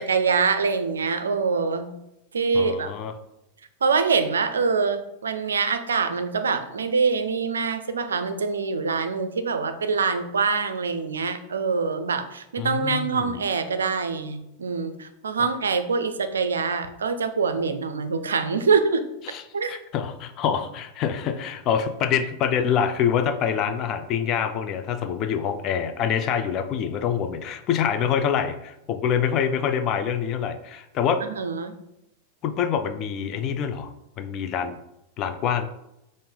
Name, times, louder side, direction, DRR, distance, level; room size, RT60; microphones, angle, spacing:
voice 1, 0.0-1.9 2.3-2.9 3.8-19.0 19.5-19.7 31.2-31.7, right 5 dB, 70° right, 9 dB, 0.4 m, -24 dB
voice 2, 2.5-3.1 12.6-13.4 19.3-31.2 32.4-34.8 35.2-35.7, left 8 dB, 35° left, 8 dB, 0.4 m, -26 dB
5.3 x 2.6 x 3.7 m, 0.85 s
figure-of-eight pair, 90°, 0 cm